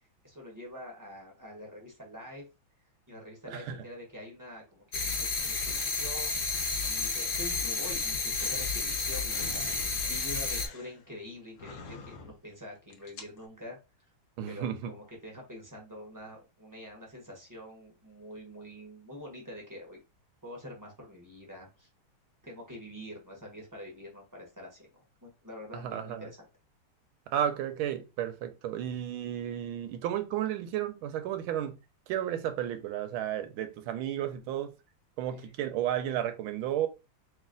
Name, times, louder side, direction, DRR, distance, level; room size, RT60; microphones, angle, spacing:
voice 1, 0.2-2.5 3.1-13.8 14.5-20.0 20.4-21.9 22.4-26.4 35.3-35.5, left 1 dB, 15° right, 0.7 m, -46 dB
voice 2, 3.5-3.8 14.4-14.9 25.7-26.3 27.3-31.8 32.1-34.7 35.2-36.9, right 11 dB, 80° right, 1.4 m, -33 dB
sound 1, 4.9-10.7, left 4 dB, 40° left, 0.7 m, -31 dB
sound 2, 8.4-12.5 12.9-13.5, left 4 dB, 75° left, 0.7 m, -47 dB
3.1 x 3.0 x 3.7 m
omnidirectional pair, 2.3 m